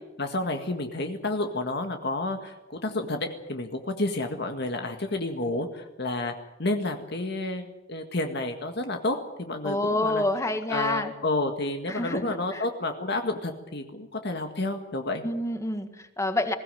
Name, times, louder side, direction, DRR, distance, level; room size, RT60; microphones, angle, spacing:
voice 1, 0.2-6.3 6.6-10.2 10.7-15.2, left 2 dB, 60° left, 5 dB, 1.9 m, -30 dB
voice 2, 9.6-11.1 11.9-12.7 15.2-16.5, left 1 dB, 15° left, 8 dB, 1.8 m, -28 dB
21.5 x 16.5 x 9.2 m, 0.97 s
head